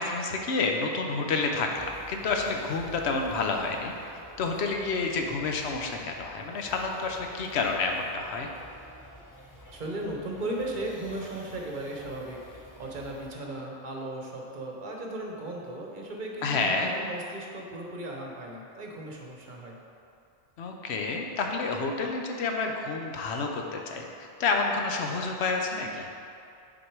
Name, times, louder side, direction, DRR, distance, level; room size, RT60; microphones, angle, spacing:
voice 1, 0.0-8.5 16.4-16.9 20.6-26.1, left 4 dB, 90° left, 2 dB, 1.0 m, -29 dB
sound 1, 1.7-13.3, equal, 25° left, 0.5 m, -50 dB
voice 2, 9.7-19.8, right 1 dB, 50° right, -1 dB, 0.9 m, -36 dB
6.2 x 4.4 x 4.6 m, 2.6 s
omnidirectional pair, 1.1 m